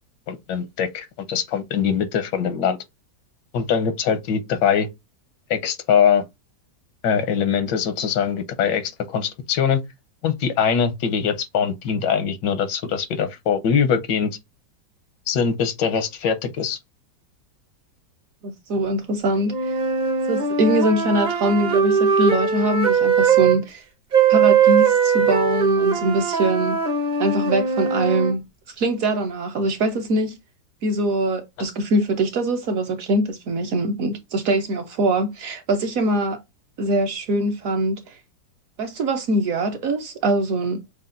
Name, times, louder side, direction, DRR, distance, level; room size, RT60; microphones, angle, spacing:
voice 1, 0.3-2.8 3.5-4.9 5.5-6.2 7.0-9.8 10.2-14.3 15.3-16.8, left 7 dB, 85° left, 1.5 m, -22 dB
voice 2, 18.4-19.7 20.3-23.8 24.3-26.8 27.2-28.4 28.8-30.4 30.8-36.4 36.8-38.2 38.8-40.8, right 2 dB, 65° right, 1.0 m, -23 dB
sound 1, 19.5-23.6 24.1-28.3, right 6 dB, 40° right, 0.7 m, -20 dB
6.6 x 2.4 x 2.5 m
omnidirectional pair, 1.9 m